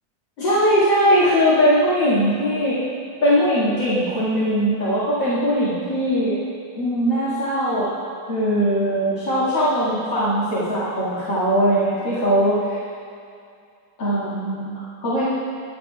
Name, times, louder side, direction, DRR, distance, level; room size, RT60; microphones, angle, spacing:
voice 1, 0.4-2.8 3.2-6.4 6.7-8.0 8.3-12.8 14.0-15.2, equal, 75° left, -13 dB, 2.9 m, -20 dB
21.0 x 7.6 x 2.4 m, 2.4 s
omnidirectional pair, 2.0 m